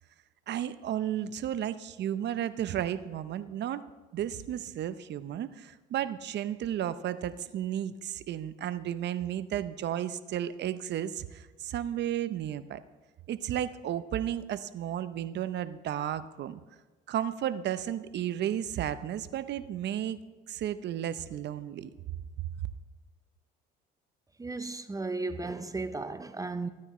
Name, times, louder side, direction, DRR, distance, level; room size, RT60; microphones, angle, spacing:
voice 1, 0.5-3.8 4.1-12.8 13.3-16.6 17.1-20.2 20.5-21.9, right 11 dB, 55° right, 0.7 m, -33 dB
voice 2, 24.4-26.7, right 3 dB, 15° right, 0.6 m, -35 dB
14.0 x 9.6 x 3.1 m
supercardioid pair, 80°, 21 cm